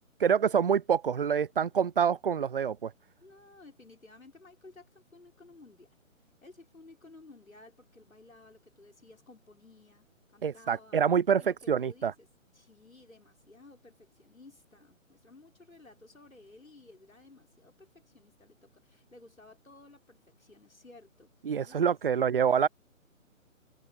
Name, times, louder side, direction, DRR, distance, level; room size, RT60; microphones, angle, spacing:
voice 1, 0.2-2.9 10.4-11.4 11.7-12.1 21.5-22.7, right 7 dB, 45° right, 0.7 m, -26 dB
voice 2, 3.2-6.0 6.4-11.0 11.4-12.3 12.5-21.3 21.6-22.3, left 2 dB, 80° left, 5.3 m, -55 dB
figure-of-eight pair, 140°, 40 cm